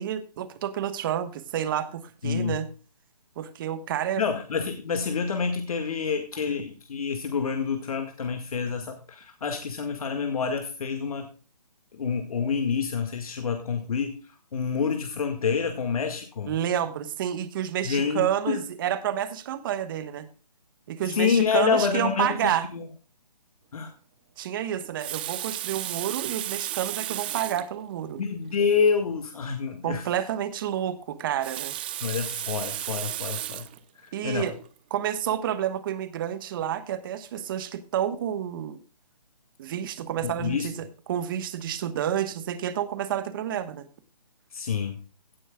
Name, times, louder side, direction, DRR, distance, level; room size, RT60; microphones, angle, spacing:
voice 1, 0.0-2.7 3.4-4.2 16.5-20.3 20.9-22.7 24.4-28.2 29.8-31.8 34.1-34.5 34.9-38.8 39.6-40.7 41.1-43.9, right 10 dB, 30° right, 13 dB, 1.2 m, -29 dB
voice 2, 2.2-2.6 4.2-11.3 11.9-14.2 14.5-16.5 17.8-18.6 21.1-22.9 23.7-23.9 28.2-30.1 32.0-33.7 34.0-34.5 40.2-40.7 44.5-45.0, left 6 dB, 60° left, 6 dB, 1.8 m, -27 dB
Water tap faucet, 24.8-27.7 28.5-28.6 28.9-29.0 31.2-33.8 34.5-34.7, right 13 dB, 15° right, 0.4 m, -34 dB
16.5 x 9.8 x 2.3 m, 0.37 s
hypercardioid pair, 155°, 21 cm